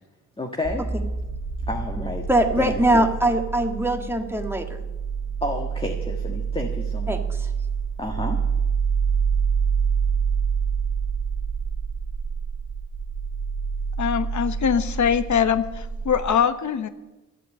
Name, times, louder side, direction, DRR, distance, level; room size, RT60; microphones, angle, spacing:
voice 1, 0.4-0.8 1.7-2.3 2.6-3.1 5.4-7.2 8.0-8.4, left 1 dB, 20° left, 1 dB, 1.6 m, -30 dB
sound 1, 0.6-16.3, right 6 dB, 50° right, 1.4 m, -27 dB
voice 2, 2.0-4.8 7.1-7.2, right 1 dB, 10° right, 3 dB, 1.7 m, -22 dB
voice 3, 14.0-16.9, left 7 dB, 70° left, 11 dB, 1.0 m, -22 dB
13.0 x 8.3 x 8.4 m, 1.1 s
cardioid pair, 80°, 30 cm